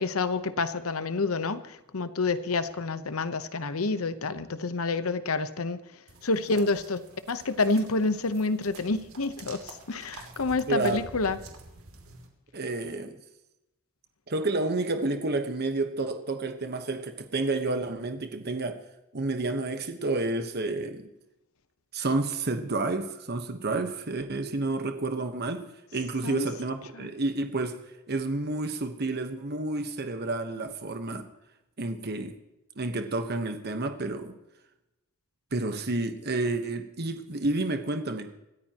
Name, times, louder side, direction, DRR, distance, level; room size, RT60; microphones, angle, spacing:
voice 1, 0.0-5.8 6.2-7.0 7.3-9.6 9.9-11.4 26.2-26.5 26.9-27.1, left 3 dB, 85° left, 12 dB, 0.9 m, -28 dB
sound 1, 6.1-12.3, right 3 dB, 80° right, 2.7 m, -48 dB
voice 2, 10.7-11.0 12.5-13.1 14.3-18.8 19.1-21.1 21.9-25.6 25.9-27.8 28.1-31.2 31.8-32.3 32.8-34.4 35.5-38.3, right 2 dB, 50° right, 6 dB, 1.1 m, -30 dB
26.0 x 14.0 x 3.0 m, 0.93 s
head